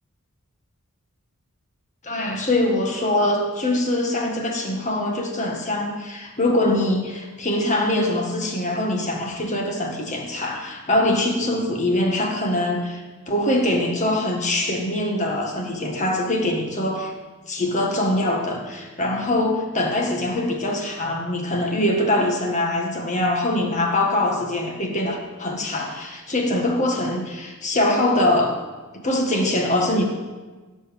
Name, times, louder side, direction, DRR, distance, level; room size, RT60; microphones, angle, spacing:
voice 1, 2.0-17.1 17.5-28.6 28.9-30.1, left 1 dB, 35° left, 1 dB, 1.7 m, -23 dB
16.0 x 5.3 x 7.1 m, 1.3 s
head